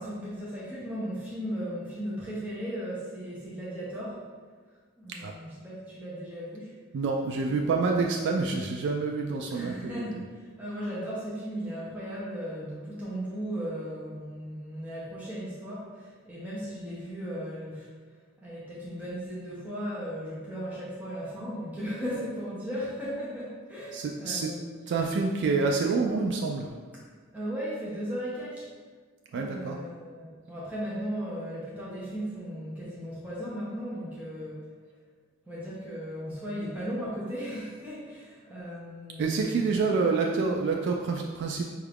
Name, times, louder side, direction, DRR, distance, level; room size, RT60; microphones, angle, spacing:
voice 1, 0.0-4.2 5.0-6.7 9.5-17.9 18.4-24.9 27.3-28.7 29.3-34.7 35.5-39.8, equal, 10° right, -8 dB, 0.7 m, -36 dB
voice 2, 6.9-10.0 23.9-24.5 24.9-26.7 29.3-29.8 39.2-41.6, right 4 dB, 55° right, 1 dB, 0.3 m, -27 dB
5.4 x 2.4 x 3.4 m, 1.5 s
head